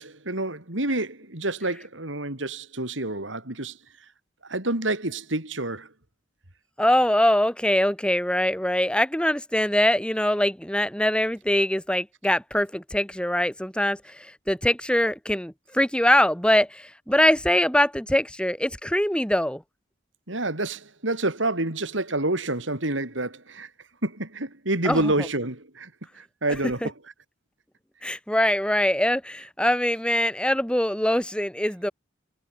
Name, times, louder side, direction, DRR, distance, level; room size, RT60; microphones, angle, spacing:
voice 1, 0.0-3.8 4.5-5.9 20.3-23.7 24.0-25.9 26.2-26.9, right 2 dB, 85° right, 5.0 m, -28 dB
voice 2, 6.8-14.0 14.5-19.6 24.8-25.1 26.8-26.9 28.0-31.9, left 1 dB, 5° left, 4.1 m, -23 dB
head